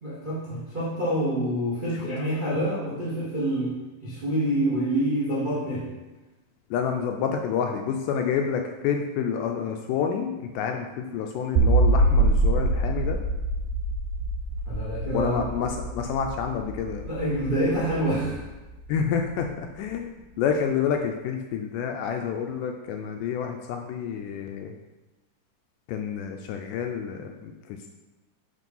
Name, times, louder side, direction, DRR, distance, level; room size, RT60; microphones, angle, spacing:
voice 1, 0.0-3.7 4.0-5.8 14.7-15.4 17.0-18.4, right 1 dB, 60° right, -7 dB, 0.5 m, -27 dB
voice 2, 6.7-13.2 15.1-17.1 18.9-24.7 25.9-27.5, left 7 dB, 80° left, 4 dB, 1.9 m, -28 dB
sound 1, 11.6-18.8, right 2 dB, 80° right, 1.9 m, -25 dB
7.5 x 3.3 x 5.4 m, 1.1 s
omnidirectional pair, 4.0 m